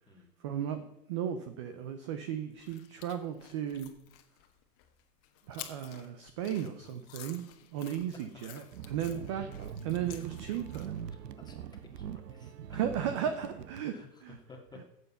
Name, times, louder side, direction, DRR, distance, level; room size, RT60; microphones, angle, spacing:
voice 1, 0.4-0.8 1.1-3.9 5.5-7.4 7.7-9.5 9.8-10.9 12.7-14.0 14.2-14.4, right 9 dB, 20° right, 9 dB, 0.4 m, -35 dB
sound 1, 2.6-11.1, left 12 dB, 35° left, 1.4 m, -52 dB
Jabba di Hut speaks on oper premiere, 8.7-13.8, right 8 dB, 75° right, 1.0 m, -43 dB
voice 2, 11.9-12.8 13.9-14.2 14.5-14.8, left 3 dB, 10° left, 2 dB, 2.1 m, -54 dB
13.5 x 8.2 x 5.6 m, 0.83 s
hypercardioid pair, 130°, 48 cm